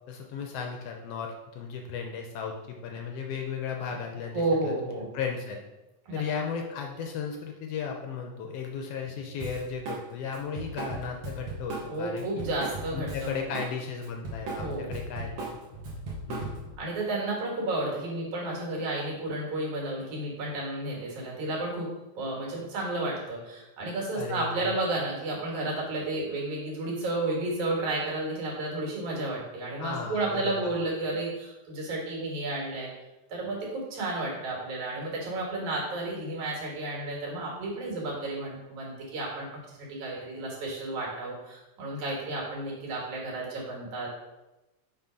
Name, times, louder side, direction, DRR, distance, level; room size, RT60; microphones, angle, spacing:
voice 1, 0.1-5.6 6.1-12.4 12.9-15.6 16.3-16.6 24.1-24.7 29.8-30.7, left 6 dB, 75° left, 2 dB, 1.5 m, -35 dB
voice 2, 4.3-5.1 6.1-6.2 11.9-13.6 14.6-14.9 16.8-21.9 22.1-32.9 33.3-44.1, right 2 dB, 80° right, -3 dB, 3.2 m, -32 dB
Drum kit, 9.4-10.0 10.3-13.7 14.0-16.8, right 2 dB, 55° right, 1.8 m, -37 dB
7.0 x 3.3 x 5.0 m, 1.0 s
omnidirectional pair, 3.3 m